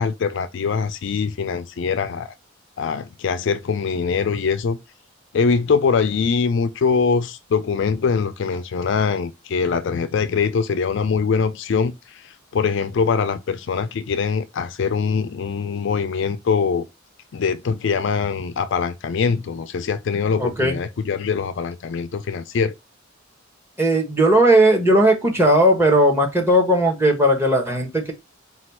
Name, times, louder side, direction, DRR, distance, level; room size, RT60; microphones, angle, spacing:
voice 1, 0.0-2.3 2.8-4.8 5.3-11.9 12.5-16.9 17.3-22.7, left 5 dB, 65° left, 0.4 m, -22 dB
voice 2, 20.4-20.8 23.8-28.1, right 1 dB, 10° right, 1.1 m, -17 dB
4.2 x 2.3 x 4.4 m
head